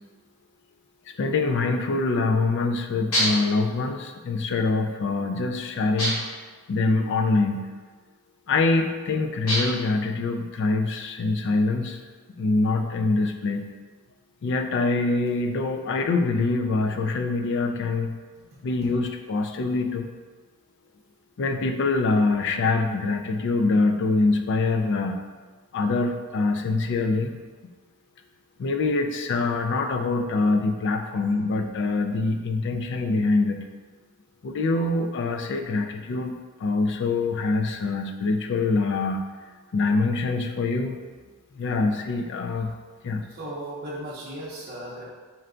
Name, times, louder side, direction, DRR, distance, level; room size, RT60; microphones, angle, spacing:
voice 1, 1.2-6.2 6.7-7.7 8.5-12.0 12.4-13.7 14.4-18.2 18.6-20.1 21.4-25.2 25.7-27.4 28.6-33.6 34.4-36.3 36.6-39.2 39.7-41.0 41.6-42.7 43.0-43.2, left 3 dB, 55° left, 5 dB, 0.3 m, -24 dB
sound 1, 3.1-3.6 6.0-6.4 9.5-9.9, equal, 80° left, 1.4 m, -26 dB
voice 2, 43.3-45.0, right 1 dB, 45° right, -8 dB, 0.6 m, -36 dB
4.5 x 2.2 x 3.7 m, 1.4 s
head